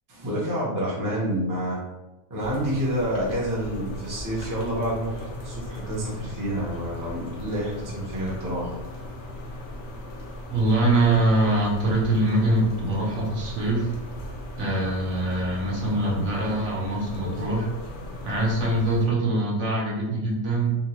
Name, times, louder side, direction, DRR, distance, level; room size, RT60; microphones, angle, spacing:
voice 1, 0.1-1.8 2.3-8.7, equal, 20° right, -5 dB, 0.6 m, -28 dB
sound 1, 2.4-19.1, left 1 dB, 60° left, 0.8 m, -38 dB
voice 2, 10.5-13.9 14.6-17.7 18.2-20.8, right 2 dB, 65° right, -3 dB, 1.2 m, -23 dB
3.7 x 2.3 x 2.9 m, 1.0 s
omnidirectional pair, 1.6 m